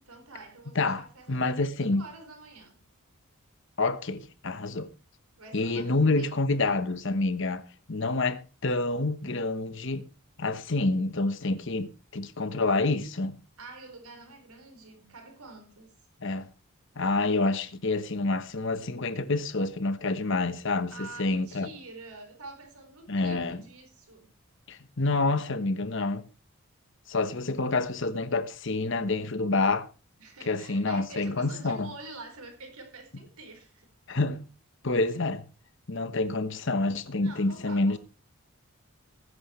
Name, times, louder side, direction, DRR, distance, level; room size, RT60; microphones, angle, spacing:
voice 1, 0.0-2.8 5.4-6.4 13.6-15.9 20.9-24.3 30.2-33.9 37.2-38.0, right 3 dB, 90° right, 4.5 m, -47 dB
voice 2, 0.7-2.0 3.8-4.9 5.5-10.1 10.4-13.4 16.2-16.5 17.0-21.7 23.1-23.6 24.7-26.2 27.1-29.9 30.5-31.9 34.1-34.4 34.8-35.4 35.9-38.0, left 3 dB, 60° left, 1.1 m, -28 dB
19.5 x 9.7 x 3.2 m
head